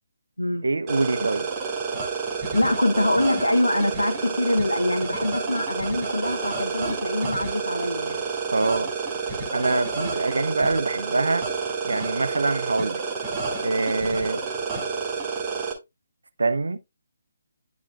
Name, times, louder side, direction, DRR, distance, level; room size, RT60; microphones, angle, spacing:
voice 1, 0.6-1.5 8.5-8.9 9.5-11.5 11.8-13.0 13.6-14.4 16.4-16.8, right 3 dB, 70° right, 0.9 m, -24 dB
sound 1, 0.9-15.7, right 4 dB, 20° right, 1.8 m, -29 dB
voice 2, 2.5-8.2, left 1 dB, 90° left, 0.8 m, -24 dB
10.5 x 4.9 x 2.3 m
figure-of-eight pair, 145°, 0 cm